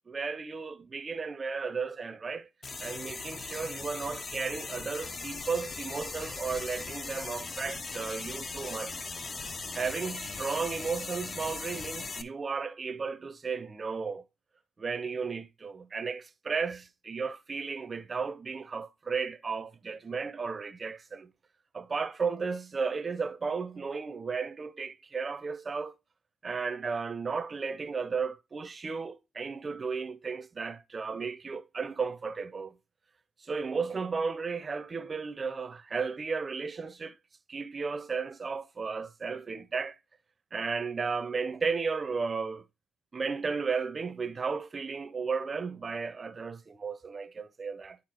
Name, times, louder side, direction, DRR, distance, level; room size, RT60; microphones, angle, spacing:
voice 1, 0.0-2.5 2.8-9.1 9.7-14.2 14.8-21.3 21.7-25.9 26.4-32.8 33.4-37.2 37.5-40.0 40.5-42.6 43.1-48.0, right 5 dB, 35° right, 0.6 m, -34 dB
sound 1, 2.6-12.2, left 4 dB, 35° left, 0.8 m, -39 dB
11.0 x 4.1 x 2.9 m
cardioid pair, 90°, 0 cm